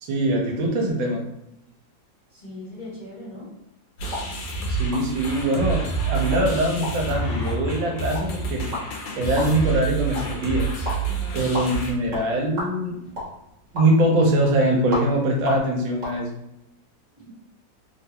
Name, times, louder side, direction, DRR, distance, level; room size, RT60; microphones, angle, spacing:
voice 1, 0.0-1.2 4.7-8.8 9.2-10.7 11.3-13.1 13.7-16.3, right 1 dB, 75° right, 1 dB, 1.3 m, -23 dB
voice 2, 2.3-3.5 11.1-11.4 12.0-12.2 17.1-17.3, left 1 dB, 30° left, -8 dB, 0.9 m, -40 dB
sound 1, 4.0-11.9, right 4 dB, 80° left, 1.4 m, -28 dB
sound 2, 4.0-16.2, left 1 dB, 45° right, 1.2 m, -37 dB
3.4 x 2.3 x 2.8 m, 0.84 s
omnidirectional pair, 2.1 m